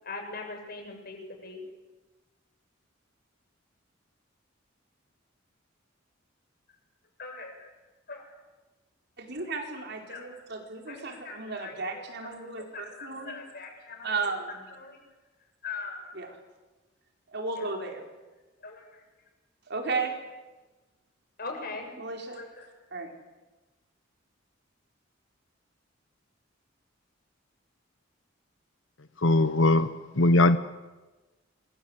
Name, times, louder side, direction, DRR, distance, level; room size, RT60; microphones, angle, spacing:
voice 1, 0.0-1.6 7.2-7.7 8.1-8.3 10.1-10.3 10.9-14.3 14.7-15.0 15.6-16.1 18.6-19.0 21.4-22.0 22.3-22.7, left 4 dB, 50° left, 3 dB, 7.5 m, -41 dB
voice 2, 9.2-13.4 14.0-14.6 16.1-16.3 17.3-18.1 19.7-20.1 22.0-22.4 22.9-23.1, right 4 dB, 60° right, 3 dB, 4.7 m, -34 dB
voice 3, 29.2-29.9 30.2-30.6, left 2 dB, 70° left, 11 dB, 1.1 m, -20 dB
27.5 x 24.5 x 8.2 m, 1.2 s
head